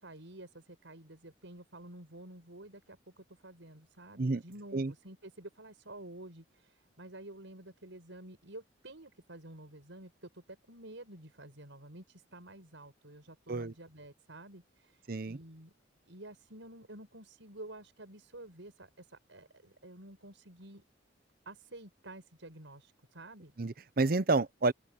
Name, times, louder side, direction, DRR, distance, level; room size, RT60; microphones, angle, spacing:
voice 1, 0.0-15.7 16.1-20.8 21.5-23.5, right 1 dB, 90° right, 5.7 m, -50 dB
voice 2, 15.1-15.4 23.6-24.7, right 3 dB, 50° right, 0.7 m, -29 dB
open air
head